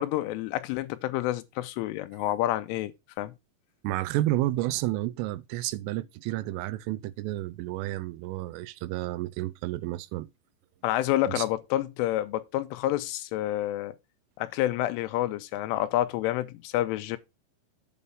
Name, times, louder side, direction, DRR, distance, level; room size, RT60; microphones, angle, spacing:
voice 1, 0.0-3.3 10.8-14.0 14.4-17.2, left 14 dB, 90° left, 3.2 m, -29 dB
voice 2, 3.8-10.3 11.3-11.5, right 16 dB, 90° right, 3.2 m, -31 dB
8.4 x 4.2 x 5.4 m
omnidirectional pair, 5.6 m